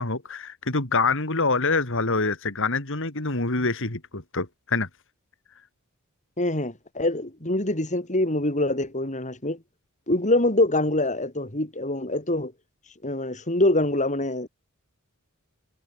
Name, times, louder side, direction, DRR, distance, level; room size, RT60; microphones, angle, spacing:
voice 1, 0.0-4.9, left 3 dB, 60° left, 3.4 m, -25 dB
voice 2, 6.4-9.6 10.1-12.5 13.0-14.5, left 1 dB, 35° left, 5.8 m, -24 dB
head